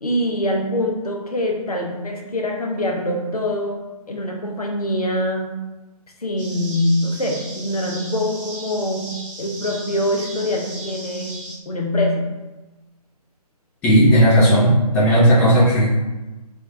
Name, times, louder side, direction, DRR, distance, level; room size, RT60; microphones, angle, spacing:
voice 1, 0.0-3.8 4.1-5.5 6.2-9.1 9.4-12.4, left 1 dB, 65° left, 1 dB, 0.8 m, -24 dB
sound 1, 6.4-11.6, right 2 dB, 55° right, 1.2 m, -36 dB
voice 2, 13.8-15.9, equal, 5° left, -10 dB, 0.6 m, -14 dB
3.3 x 3.1 x 3.6 m, 1.1 s
figure-of-eight pair, 140°, 20 cm